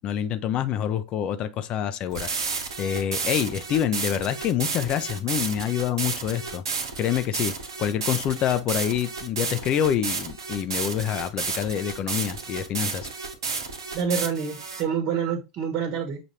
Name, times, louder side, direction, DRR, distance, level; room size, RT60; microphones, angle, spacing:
voice 1, 0.0-6.6 7.0-13.1, left 9 dB, 40° left, 0.6 m, -27 dB
sound 1, 2.1-14.8, right 4 dB, 80° right, 1.0 m, -31 dB
voice 2, 13.9-16.2, right 7 dB, 45° right, 1.2 m, -27 dB
5.9 x 2.6 x 3.1 m
hypercardioid pair, 95°, 2 cm